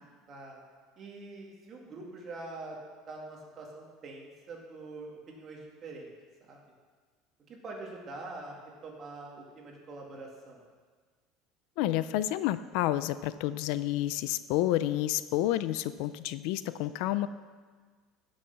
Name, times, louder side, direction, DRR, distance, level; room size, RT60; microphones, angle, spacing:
voice 1, 0.3-0.6 1.0-2.8 3.1-6.1 6.4-6.6 7.5-8.6 8.8-10.6, right 2 dB, 30° right, -1 dB, 2.2 m, -44 dB
voice 2, 11.8-17.3, left 14 dB, 65° left, 14 dB, 0.4 m, -29 dB
15.5 x 6.3 x 5.9 m, 1.5 s
cardioid pair, 165°, 0 cm